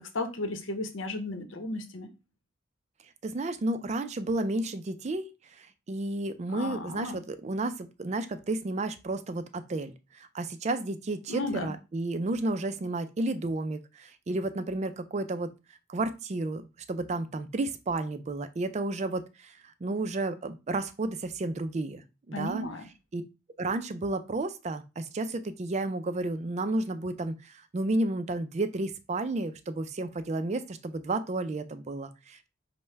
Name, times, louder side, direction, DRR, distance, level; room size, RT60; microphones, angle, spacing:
voice 1, 0.0-2.1 6.5-7.2 11.3-11.7 22.3-22.9, left 2 dB, 80° left, 7 dB, 0.8 m, -34 dB
voice 2, 3.2-5.3 5.6-15.5 15.9-22.6 23.1-23.2 23.6-32.5, right 2 dB, 35° right, 11 dB, 0.4 m, -32 dB
5.4 x 2.1 x 4.5 m, 0.28 s
head